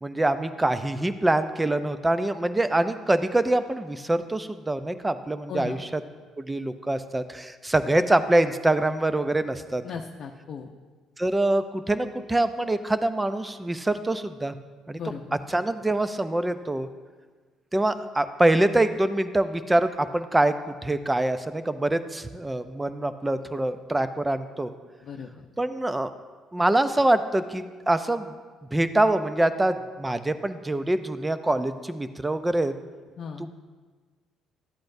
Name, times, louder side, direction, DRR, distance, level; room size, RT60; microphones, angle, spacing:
voice 1, 0.0-6.0 6.4-9.8 11.2-14.6 14.9-15.1 15.5-16.9 17.7-24.7 25.6-26.1 26.5-28.4 28.7-32.7 33.4-33.5, right 1 dB, 15° right, 11 dB, 0.5 m, -25 dB
voice 2, 5.5-5.8 9.8-10.7 14.9-15.2 25.0-25.4 33.2-33.5, left 6 dB, 55° left, 1 dB, 0.6 m, -36 dB
13.0 x 8.7 x 2.6 m, 1.4 s
cardioid pair, 100°, 0 cm